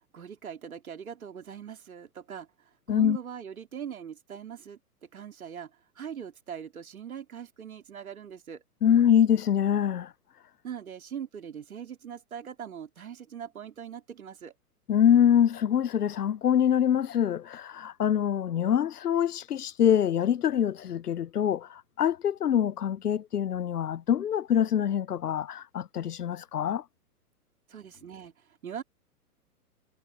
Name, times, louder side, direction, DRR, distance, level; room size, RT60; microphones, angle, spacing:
voice 1, 0.1-8.6 10.6-14.5 27.7-28.8, right 8 dB, 65° right, 3.6 m, -41 dB
voice 2, 8.8-10.1 14.9-26.8, left 9 dB, 80° left, 0.6 m, -25 dB
figure-of-eight pair, 115°, 46 cm